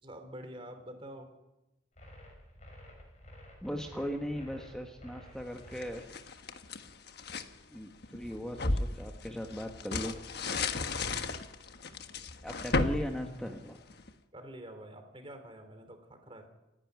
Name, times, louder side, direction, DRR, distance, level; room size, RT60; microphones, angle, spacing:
voice 1, 0.0-1.3 14.3-16.5, right 1 dB, 30° right, 7 dB, 3.3 m, -47 dB
sound 1, 2.0-5.9, equal, 40° left, 6.6 m, -51 dB
voice 2, 3.6-6.4 7.7-10.2 12.4-13.8, equal, 5° left, 2 dB, 1.3 m, -38 dB
sound 2, 5.5-7.5 8.0-14.1, left 3 dB, 60° left, 1.3 m, -35 dB
28.5 x 11.0 x 9.4 m, 1.0 s
head